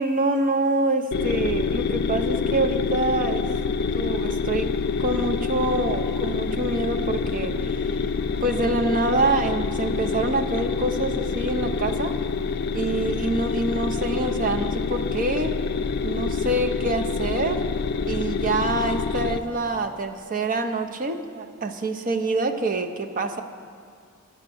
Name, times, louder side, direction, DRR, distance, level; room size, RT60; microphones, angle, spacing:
voice 1, 0.0-3.5 3.9-4.7 5.0-8.1 8.4-12.2 12.7-15.6 16.0-17.7 18.1-23.4, right 2 dB, 40° right, 6 dB, 0.6 m, -26 dB
sound 1, 1.1-19.4, left 5 dB, 50° left, 0.4 m, -26 dB
9.3 x 8.9 x 6.9 m, 2.1 s
head